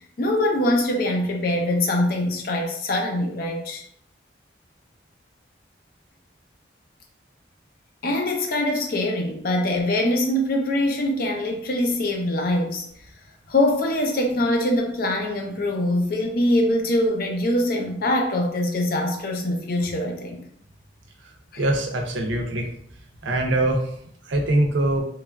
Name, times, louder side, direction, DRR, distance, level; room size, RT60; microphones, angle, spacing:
voice 1, 0.2-3.8 8.0-12.9 13.5-20.4 21.5-21.6, left 1 dB, 50° left, 2 dB, 0.5 m, -23 dB
voice 2, 21.6-22.7 23.2-23.8 24.3-25.0, right 1 dB, 80° right, 2 dB, 0.5 m, -22 dB
2.9 x 2.3 x 2.2 m, 0.66 s
head